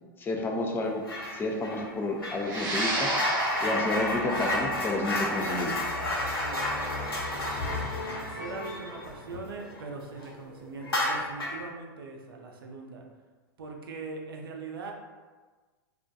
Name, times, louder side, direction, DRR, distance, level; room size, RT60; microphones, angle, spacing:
voice 1, 0.2-1.0 1.3-5.7, left 2 dB, 20° left, 1 dB, 0.3 m, -31 dB
sound 1, 1.0-1.4 1.6-9.8 10.1-10.3 10.8-11.7, left 1 dB, 90° left, 0.8 m, -32 dB
sound 2, 1.4-10.5, left 3 dB, 60° left, 1.2 m, -42 dB
sound 3, 2.4-11.0, right 1 dB, 35° right, 0.7 m, -34 dB
voice 2, 6.4-6.9 8.1-13.1 13.6-14.9, right 4 dB, 80° right, 1 dB, 0.4 m, -41 dB
2.4 x 2.1 x 2.5 m, 1.3 s
hypercardioid pair, 100°, 12 cm